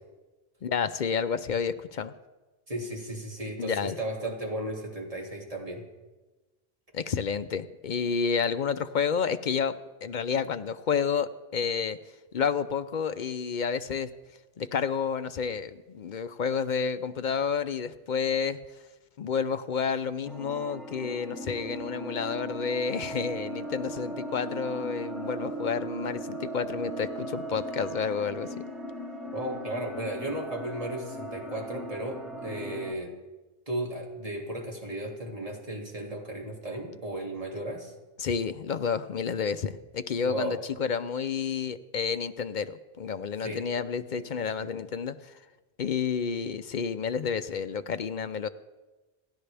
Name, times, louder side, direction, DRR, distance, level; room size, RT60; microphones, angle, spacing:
voice 1, 0.6-2.1 3.6-4.0 6.9-12.0 12.3-14.1 14.6-18.6 19.2-28.6 38.2-45.4 45.8-48.5, left 6 dB, 55° left, 11 dB, 0.7 m, -30 dB
voice 2, 2.7-5.8 29.3-33.1 33.7-37.9 40.2-40.5 43.4-43.6 44.1-44.7, right 1 dB, 35° right, -1 dB, 2.6 m, -35 dB
sound 1, 20.2-32.9, right 1 dB, ahead, 2.2 m, -38 dB
27.5 x 11.0 x 3.4 m, 1.2 s
omnidirectional pair, 1.0 m